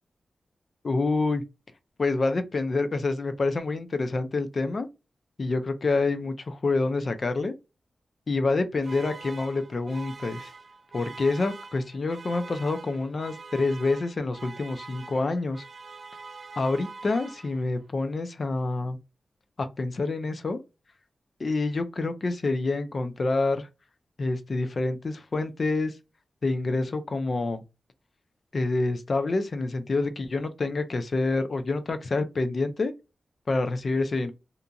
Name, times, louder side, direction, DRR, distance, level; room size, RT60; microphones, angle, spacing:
voice 1, 0.8-1.4 2.0-4.9 5.4-7.5 8.3-10.5 10.9-15.6 16.6-19.0 19.6-20.6 21.4-23.7 24.2-25.9 26.4-27.6 28.5-32.9 33.5-34.3, left 3 dB, 40° left, 0.3 m, -27 dB
sound 1, 8.8-17.8, right 4 dB, 45° right, 0.3 m, -44 dB
2.8 x 2.5 x 2.3 m
wide cardioid pair, 175°, 0 cm